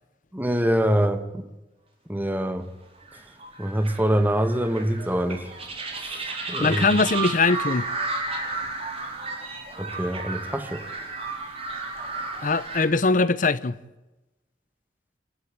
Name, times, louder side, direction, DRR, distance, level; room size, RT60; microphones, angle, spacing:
voice 1, 0.3-1.4 2.1-2.7 3.6-5.5 6.0-7.0 9.8-10.8, right 1 dB, 10° right, 1.5 m, -25 dB
sound 1, 3.1-12.8, right 3 dB, 35° right, 4.6 m, -33 dB
voice 2, 6.6-7.9 12.4-13.8, left 3 dB, 50° left, 0.8 m, -21 dB
27.5 x 13.0 x 9.0 m
head